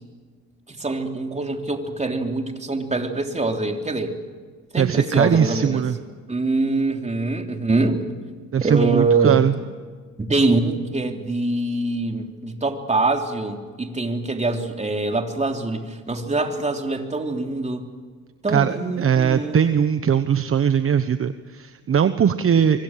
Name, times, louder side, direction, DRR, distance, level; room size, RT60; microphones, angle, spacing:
voice 1, 0.7-4.2 4.7-5.8 6.3-8.1 8.6-9.4 10.2-17.9 18.4-19.6, right 3 dB, 20° right, 4 dB, 3.4 m, -24 dB
voice 2, 4.8-6.0 8.5-9.5 18.5-22.8, right 8 dB, 45° right, 10 dB, 1.1 m, -20 dB
25.0 x 24.5 x 7.5 m, 1.5 s
cardioid pair, 90°, 30 cm